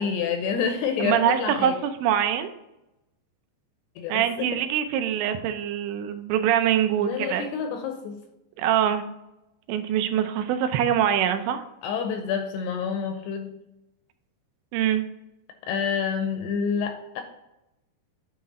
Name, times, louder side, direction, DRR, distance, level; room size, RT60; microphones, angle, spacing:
voice 1, 0.0-1.7 4.0-4.6 7.0-8.2 11.8-13.6 15.7-17.2, left 6 dB, 80° left, 5 dB, 2.5 m, -28 dB
voice 2, 1.0-2.5 4.1-7.5 8.6-9.0 9.7-11.6 14.7-15.0, right 10 dB, 85° right, 8 dB, 2.9 m, -24 dB
9.5 x 3.9 x 4.1 m, 0.90 s
omnidirectional pair, 5.2 m